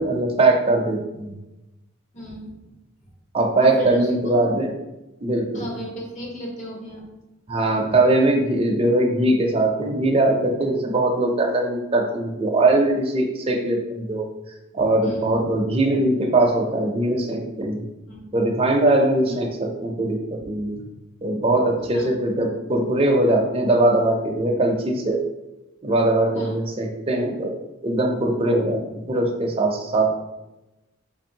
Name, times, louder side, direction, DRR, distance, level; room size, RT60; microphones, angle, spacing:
voice 1, 0.0-1.4 3.3-4.7 5.2-5.7 7.5-14.3 14.7-17.8 18.3-20.8 21.2-25.2 25.8-27.5 27.8-30.1, right 2 dB, 30° right, 1 dB, 0.5 m, -21 dB
voice 2, 2.1-2.5 3.8-4.4 5.5-7.0 15.0-15.4 18.1-18.2 19.3-19.4 21.9-22.1 26.3-26.6, left 1 dB, 35° left, -2 dB, 0.9 m, -33 dB
4.8 x 2.6 x 2.7 m, 0.99 s
head